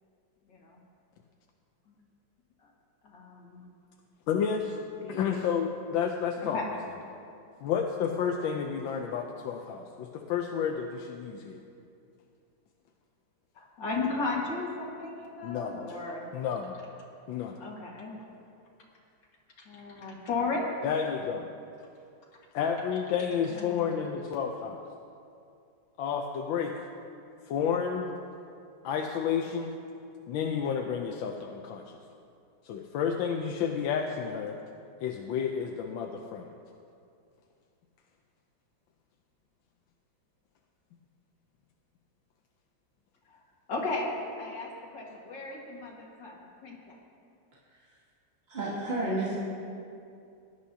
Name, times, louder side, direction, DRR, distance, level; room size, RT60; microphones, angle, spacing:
voice 1, 0.5-0.8 1.9-2.0 2.6-2.7 3.0-3.6 5.0-5.5 6.4-6.7 13.6-16.2 17.6-18.2 19.7-20.7 23.5-23.9 43.3-43.4 43.7-47.0, left 3 dB, 65° left, -2 dB, 2.4 m, -35 dB
voice 2, 4.3-4.8 5.1-6.6 7.6-11.6 15.4-16.0 16.3-16.7 17.3-17.6 20.8-21.5 22.5-24.8 26.0-26.7 27.5-28.1 28.8-29.7 30.3-31.8 32.6-34.5 35.0-36.5, left 7 dB, 80° left, 2 dB, 1.4 m, -31 dB
voice 3, 48.5-49.4, right 2 dB, 30° right, -8 dB, 2.6 m, -30 dB
18.0 x 11.0 x 2.8 m, 2.5 s
omnidirectional pair, 2.1 m